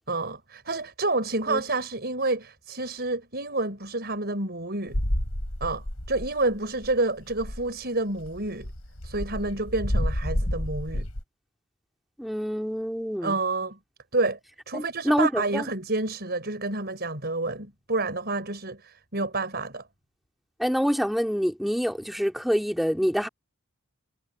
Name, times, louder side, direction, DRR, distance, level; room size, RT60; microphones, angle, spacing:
voice 1, 0.1-5.0 5.6-8.7 9.0-11.1 13.2-13.8 14.1-14.4 14.7-19.8, right 2 dB, 45° right, 5.7 m, -29 dB
sound 1, 4.9-6.6 6.8-7.0 7.2-7.7 8.2-11.2, equal, 80° left, 5.0 m, -30 dB
voice 2, 12.2-13.4 14.7-15.7 20.6-23.3, equal, ahead, 3.6 m, -26 dB
head